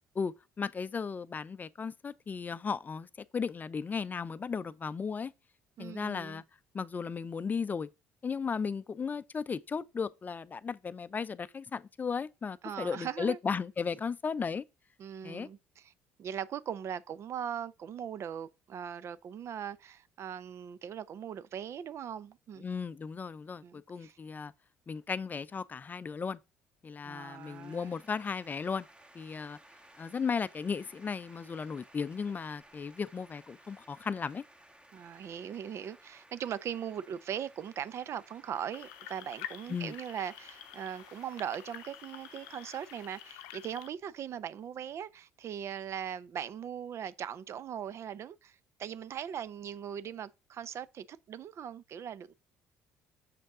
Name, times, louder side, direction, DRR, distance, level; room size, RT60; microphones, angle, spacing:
voice 1, 0.2-3.1 3.3-5.3 5.8-6.4 6.7-7.9 8.2-14.6 15.2-15.5 22.6-24.5 24.9-26.4 26.8-28.9 29.1-29.6 30.0-34.4 39.7-39.9, left 5 dB, 30° left, 0.5 m, -35 dB
voice 2, 5.8-6.4 12.6-13.4 15.0-15.9 16.2-22.6 23.6-24.2 27.0-27.9 34.9-52.3, right 9 dB, 55° right, 0.6 m, -40 dB
sound 1, 27.1-43.3, right 1 dB, 20° right, 1.4 m, -59 dB
sound 2, 38.7-43.9, left 13 dB, 85° left, 0.6 m, -48 dB
6.8 x 5.3 x 3.7 m
supercardioid pair, 70°, 6 cm